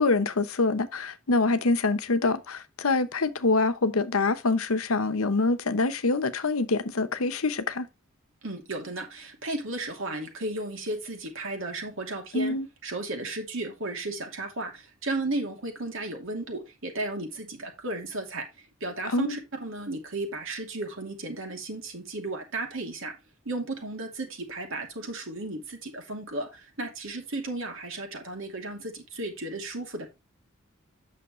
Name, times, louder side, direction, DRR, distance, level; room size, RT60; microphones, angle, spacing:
voice 1, 0.0-7.9 12.3-12.7 19.1-19.4, left 3 dB, 75° left, 0.9 m, -25 dB
voice 2, 8.4-12.6 12.8-23.2 23.4-30.1, right 2 dB, 65° right, 2.6 m, -34 dB
8.7 x 6.6 x 3.1 m
head